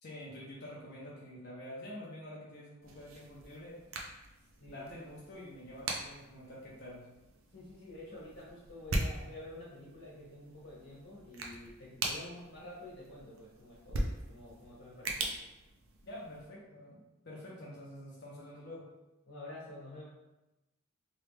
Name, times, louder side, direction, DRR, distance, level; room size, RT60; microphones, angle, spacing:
voice 1, 0.0-3.8 4.7-7.1 16.0-18.9, left 1 dB, 55° left, -6 dB, 0.7 m, -47 dB
sound 1, 2.8-16.5, right 2 dB, 70° right, 0.5 m, -41 dB
voice 2, 7.5-15.4 19.2-20.0, left 1 dB, 75° left, -8 dB, 1.2 m, -49 dB
3.1 x 2.4 x 3.2 m, 0.97 s
head